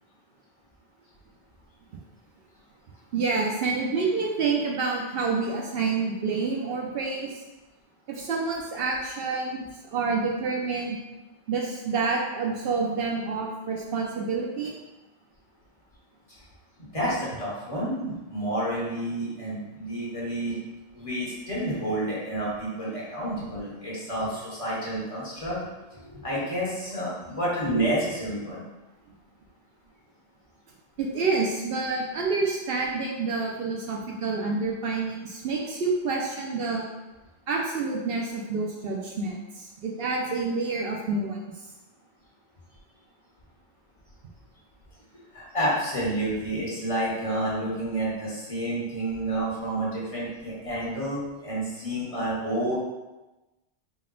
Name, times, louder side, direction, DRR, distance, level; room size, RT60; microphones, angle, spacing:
voice 1, 3.1-7.4 8.1-11.0 11.5-14.7 31.0-36.8 37.5-41.4, right 4 dB, 65° right, -1 dB, 0.7 m, -28 dB
voice 2, 16.9-20.6 20.9-25.6 25.9-28.6 45.3-52.7, right 1 dB, 30° left, -7 dB, 1.1 m, -29 dB
4.0 x 2.1 x 3.7 m, 1.1 s
omnidirectional pair, 1.1 m